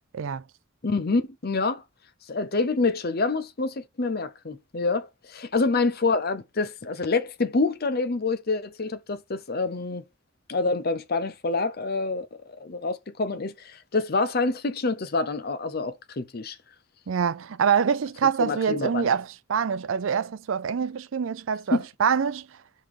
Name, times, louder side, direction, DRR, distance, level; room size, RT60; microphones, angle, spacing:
voice 1, 0.8-1.8 2.3-10.0 10.5-12.3 12.6-16.6 18.2-19.1 21.7-21.9, left 3 dB, 50° left, 0.7 m, -27 dB
voice 2, 17.1-22.5, right 7 dB, 70° right, 0.5 m, -25 dB
5.3 x 3.8 x 4.9 m
head